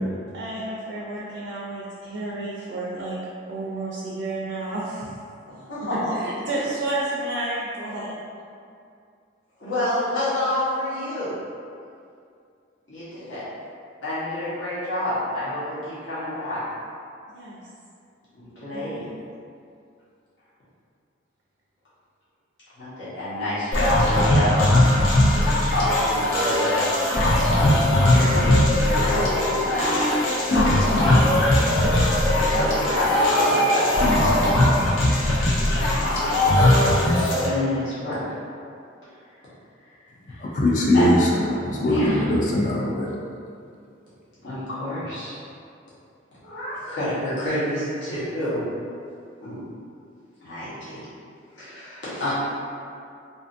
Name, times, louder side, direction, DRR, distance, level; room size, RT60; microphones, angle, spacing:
voice 1, 0.3-3.2 3.5-5.1 5.9-8.1 17.3-17.6 18.7-19.1, right 2 dB, 70° right, -5 dB, 0.4 m, -31 dB
voice 2, 5.7-6.3 9.6-11.4 12.9-13.5 14.0-16.6 18.3-19.0 22.8-24.7 25.7-26.9 27.8-31.4 31.7-34.4 36.0-37.1 37.4-38.4 40.3-40.6 40.9-41.2 41.8-42.3 44.4-45.3 46.4-48.7 49.4-49.6 50.4-51.1 51.5-52.3, left 1 dB, 70° left, -12 dB, 1.0 m, -28 dB
sound 1, 23.7-37.5, left 1 dB, 90° left, 0.6 m, -19 dB
voice 3, 40.4-41.2 41.5-43.1, left 1 dB, 40° left, -3 dB, 0.4 m, -21 dB
2.5 x 2.4 x 2.5 m, 2.4 s
head